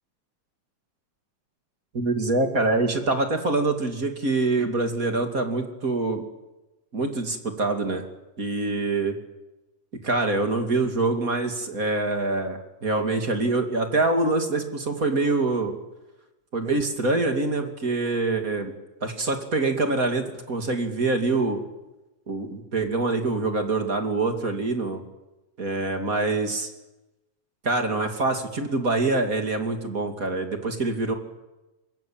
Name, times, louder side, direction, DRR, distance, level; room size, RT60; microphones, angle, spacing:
voice 1, 1.9-6.2 6.9-8.0 8.4-9.2 10.0-15.7 16.5-18.7 19.0-21.6 22.3-25.0 25.6-26.7 27.6-31.1, right 3 dB, 30° right, 5 dB, 2.8 m, -25 dB
25.5 x 22.5 x 8.9 m, 1.0 s
omnidirectional pair, 3.4 m